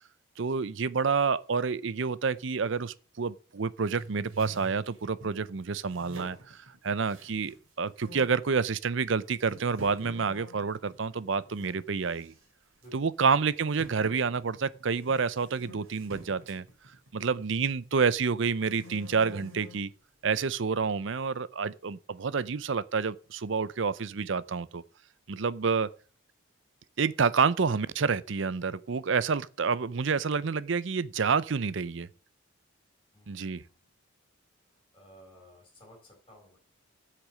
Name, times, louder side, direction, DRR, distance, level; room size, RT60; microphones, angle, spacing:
voice 1, 0.4-12.3 12.9-16.7 17.1-19.9 20.2-24.8 25.3-25.9 27.0-32.1 33.3-33.6, right 5 dB, 60° right, 0.5 m, -28 dB
sound 1, 3.8-5.4 5.9-7.6 8.0-8.4 9.0-9.1 9.5-11.8 12.1-12.4 12.8-12.9 13.8-17.8 18.2-19.9, right 1 dB, 75° right, 3.0 m, -47 dB
voice 2, 12.8-13.1 33.1-33.8 34.9-36.6, equal, 20° left, 4.7 m, -55 dB
8.2 x 6.7 x 7.4 m
head